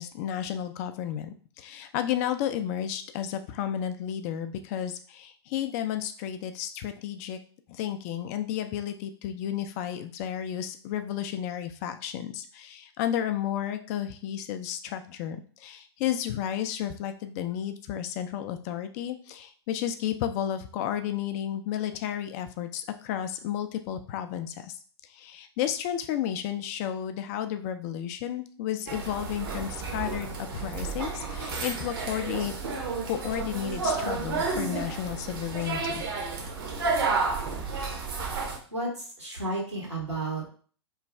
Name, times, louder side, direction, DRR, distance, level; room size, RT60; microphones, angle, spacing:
voice 1, 0.0-7.4 7.7-24.8 25.1-32.5 33.0-36.0, left 10 dB, 35° left, 9 dB, 0.3 m, -32 dB
sound 1, 28.9-38.6, right 4 dB, 55° right, 0.8 m, -31 dB
voice 2, 38.7-40.5, right 2 dB, 90° right, -4 dB, 1.6 m, -32 dB
3.1 x 2.3 x 3.3 m, 0.43 s
figure-of-eight pair, 100°, 14 cm